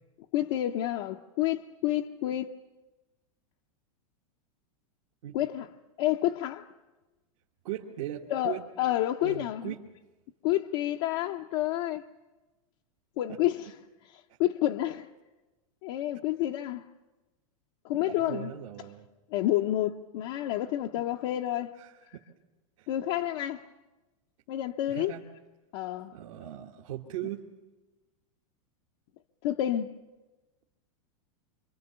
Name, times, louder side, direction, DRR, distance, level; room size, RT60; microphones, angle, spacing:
voice 1, 0.3-2.5 5.3-5.7 6.0-6.7 8.3-9.7 10.4-12.0 13.2-13.7 14.1-15.1 15.8-16.9 17.8-18.5 19.3-21.7 22.9-23.7 24.5-25.1 25.7-26.1 29.4-29.9, left 13 dB, 55° left, 0.7 m, -29 dB
voice 2, 7.6-8.6 9.2-9.8 18.0-19.1 20.9-21.0 21.8-22.2 22.8-22.9 24.9-25.2 26.1-27.5, right 13 dB, 65° right, 1.4 m, -39 dB
26.0 x 23.5 x 6.9 m
supercardioid pair, 150°, 18 cm